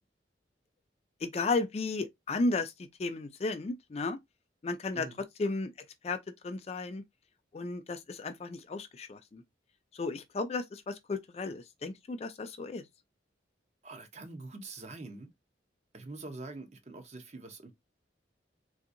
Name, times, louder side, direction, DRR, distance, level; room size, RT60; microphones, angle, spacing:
voice 1, 1.2-2.7 3.0-4.2 4.6-5.1 5.4-5.7 6.0-6.2 6.4-7.0 7.5-9.4 9.9-12.8, left 3 dB, 35° left, 0.3 m, -34 dB
voice 2, 4.9-5.2 13.8-15.3 15.9-17.7, right 2 dB, 35° right, 0.7 m, -45 dB
3.4 x 2.7 x 2.5 m
head